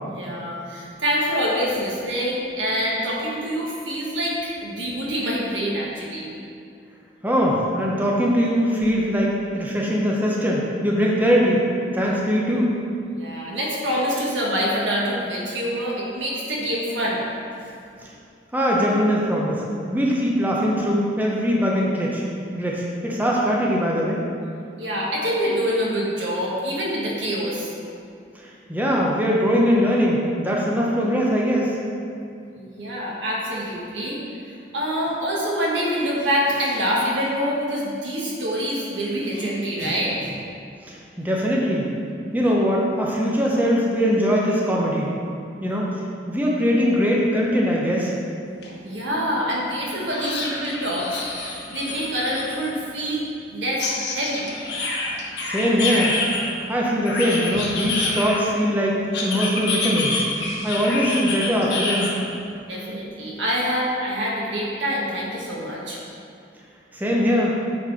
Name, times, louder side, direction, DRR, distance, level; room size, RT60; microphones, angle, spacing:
voice 1, 0.1-6.3 13.2-17.2 24.8-27.7 32.5-34.2 34.7-40.4 48.8-53.8 54.1-54.5 62.6-66.0, equal, 85° right, -4 dB, 1.7 m, -26 dB
voice 2, 7.2-11.6 11.9-12.7 18.5-19.6 19.9-22.2 22.5-24.2 28.3-31.8 40.9-41.9 42.3-45.1 45.6-48.1 55.4-56.2 56.7-60.2 60.6-62.1 66.9-67.6, equal, 10° right, -4 dB, 0.8 m, -21 dB
sound 1, 48.6-48.7 49.1-49.2 50.1-52.7 53.8-56.5 57.0-58.6 59.1-62.1, left 3 dB, 65° left, 1.2 m, -27 dB
8.3 x 4.2 x 4.9 m, 2.4 s
head